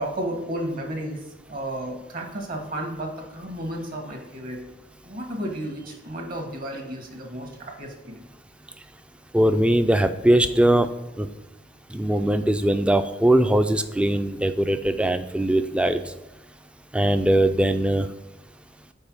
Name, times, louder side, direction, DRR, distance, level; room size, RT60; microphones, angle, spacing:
voice 1, 0.0-4.6 5.0-8.3, right 1 dB, 50° right, 3 dB, 1.4 m, -33 dB
voice 2, 9.3-10.9 11.2-11.3 11.9-16.0 16.9-18.1, right 1 dB, 5° right, 9 dB, 0.4 m, -20 dB
5.4 x 4.4 x 6.0 m, 1.1 s
head